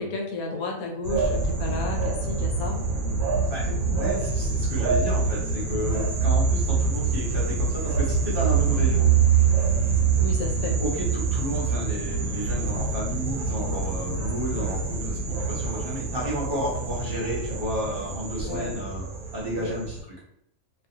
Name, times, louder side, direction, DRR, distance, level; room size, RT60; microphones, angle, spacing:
voice 1, 0.0-2.8 3.6-4.0 10.2-10.8 18.5-18.7 19.6-19.7, left 3 dB, 85° left, 1 dB, 1.1 m, -32 dB
sound 1, 1.0-20.0, right 5 dB, 90° right, 1.1 m, -25 dB
voice 2, 3.5-9.1 10.8-20.0, equal, 50° right, -5 dB, 0.8 m, -32 dB
2.3 x 2.2 x 2.7 m, 0.76 s
omnidirectional pair, 1.5 m